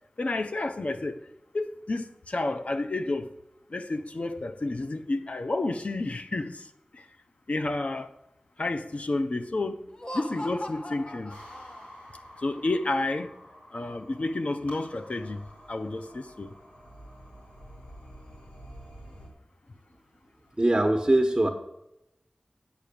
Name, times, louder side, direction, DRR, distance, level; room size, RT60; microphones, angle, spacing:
voice 1, 0.2-1.2 1.5-3.3 3.7-7.1 7.5-8.1 8.6-9.8 10.1-11.3 12.4-13.3 13.7-15.4 15.7-16.5, left 2 dB, 60° left, 0.9 m, -30 dB
Laughter, 9.9-12.2, left 1 dB, 40° left, 1.1 m, -40 dB
sound 1, 11.3-19.3, equal, 90° left, 4.2 m, -49 dB
voice 2, 20.6-21.5, right 1 dB, 25° right, 1.1 m, -22 dB
9.5 x 8.4 x 6.9 m
wide cardioid pair, 55°, 2 cm